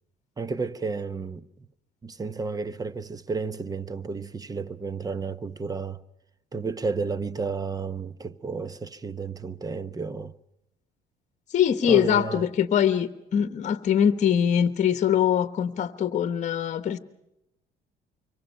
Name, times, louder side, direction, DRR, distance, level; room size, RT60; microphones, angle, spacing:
voice 1, 0.4-1.4 2.0-6.0 6.5-10.3 11.8-12.5, right 4 dB, 20° right, 0.9 m, -32 dB
voice 2, 11.5-17.0, left 9 dB, 45° left, 1.2 m, -23 dB
25.5 x 23.5 x 5.6 m
cardioid pair, 110°, 17 cm